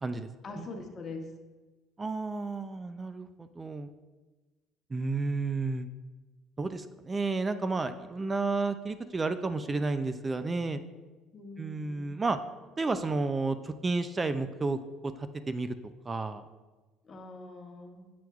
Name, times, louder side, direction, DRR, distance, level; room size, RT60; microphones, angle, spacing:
voice 1, 0.4-1.3 11.3-12.2 17.0-18.1, left 3 dB, 40° left, 3 dB, 1.0 m, -43 dB
voice 2, 2.0-3.9 4.9-5.9 6.6-10.8 11.6-12.4 12.8-15.7 16.1-16.4, right 3 dB, 25° right, 11 dB, 0.3 m, -31 dB
7.7 x 5.8 x 2.4 m, 1.2 s
supercardioid pair, 90°, 0 cm